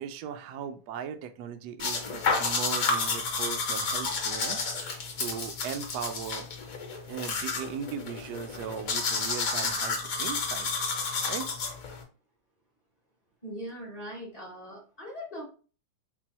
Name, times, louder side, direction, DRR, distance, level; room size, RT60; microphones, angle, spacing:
voice 1, 0.0-4.6 5.2-6.5 7.0-10.9 11.3-11.5, right 8 dB, 80° right, 8 dB, 0.9 m, -38 dB
sound 1, 1.8-12.0, left 4 dB, 55° left, 1.1 m, -31 dB
voice 2, 13.4-15.4, equal, 35° left, -3 dB, 0.6 m, -40 dB
4.4 x 2.0 x 4.1 m, 0.38 s
omnidirectional pair, 2.3 m